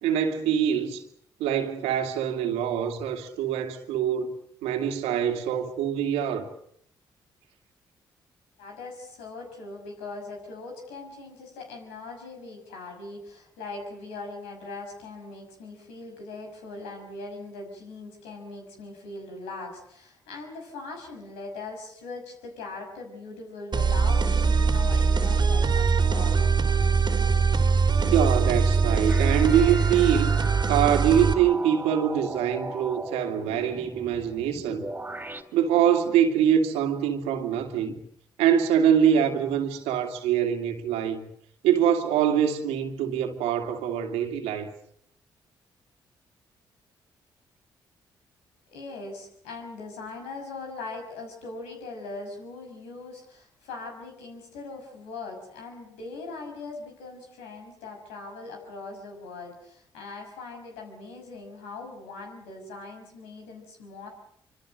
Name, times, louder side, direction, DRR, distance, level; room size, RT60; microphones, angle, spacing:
voice 1, 0.0-1.0 1.4-4.3 4.6-6.5 28.0-30.3 30.7-34.8 35.5-38.0 38.4-41.3 41.6-44.7, right 9 dB, 80° right, 2.4 m, -24 dB
voice 2, 8.6-26.4 48.7-64.1, left 3 dB, 80° left, 6.0 m, -40 dB
sound 1, 23.7-31.3, right 5 dB, 45° right, 2.4 m, -22 dB
sound 2, 29.1-35.4, right 2 dB, 15° right, 3.2 m, -38 dB
25.5 x 25.5 x 6.5 m
hypercardioid pair, 45°, 11 cm